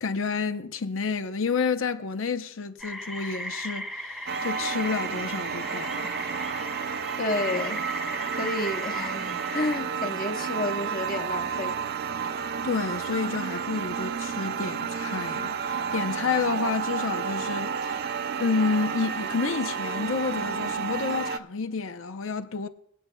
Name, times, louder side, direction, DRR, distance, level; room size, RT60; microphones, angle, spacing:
voice 1, 0.0-6.1 12.2-18.0 18.4-22.7, left 4 dB, 80° left, 0.7 m, -30 dB
sound 1, 2.8-9.8, equal, ahead, 1.0 m, -36 dB
sound 2, 4.3-21.4, right 6 dB, 55° right, 0.4 m, -31 dB
voice 2, 7.2-7.8 8.4-11.8, left 2 dB, 45° left, 1.2 m, -30 dB
24.5 x 8.4 x 2.3 m
head